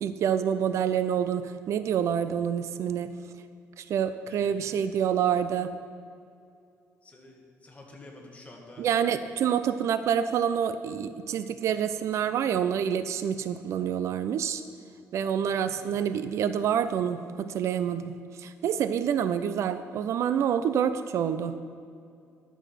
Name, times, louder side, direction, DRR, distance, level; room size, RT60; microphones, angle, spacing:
voice 1, 0.0-3.1 3.8-5.7 8.8-14.6 15.1-21.6, right 8 dB, 65° right, 12 dB, 0.5 m, -27 dB
voice 2, 4.3-4.9 7.0-8.9 15.5-15.8, left 2 dB, 25° left, 0 dB, 1.8 m, -50 dB
11.5 x 7.0 x 5.8 m, 2.5 s
cardioid pair, 120°, 5 cm